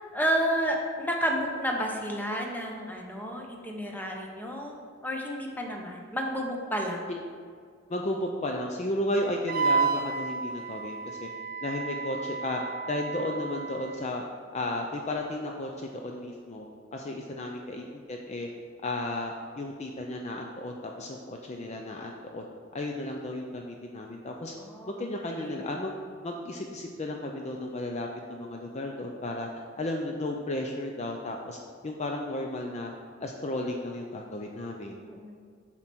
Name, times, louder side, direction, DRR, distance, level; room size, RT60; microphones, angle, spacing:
voice 1, 0.1-4.7 5.0-7.1 24.6-24.9 25.3-25.6 35.0-35.4, equal, 10° left, 0 dB, 0.9 m, -31 dB
voice 2, 7.9-11.3 11.6-12.6 12.9-14.2 14.5-16.7 16.9-18.5 18.8-22.4 22.7-24.5 24.9-25.9 26.2-29.5 29.8-31.6 31.8-32.9 33.2-35.0, left 1 dB, 35° left, 1 dB, 0.5 m, -34 dB
Wind instrument woodwind instrument, 9.5-14.1, right 4 dB, 50° right, 0.4 m, -31 dB
7.8 x 4.4 x 6.1 m, 2.1 s
head